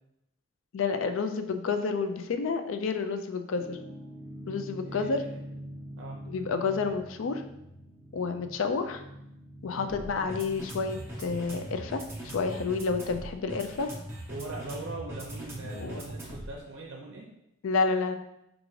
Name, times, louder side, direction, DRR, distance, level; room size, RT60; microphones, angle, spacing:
voice 1, 0.7-3.8 4.5-5.2 6.3-7.4 8.1-9.0 9.6-13.9 15.6-16.0 17.6-18.1, left 4 dB, 70° left, 7 dB, 0.4 m, -30 dB
sound 1, 3.5-16.6, right 1 dB, 10° right, 0.7 m, -42 dB
voice 2, 4.8-5.3 6.0-6.2 9.7-9.9 14.3-17.2, right 2 dB, 60° right, -1 dB, 0.5 m, -41 dB
4.8 x 2.5 x 3.1 m, 0.83 s
head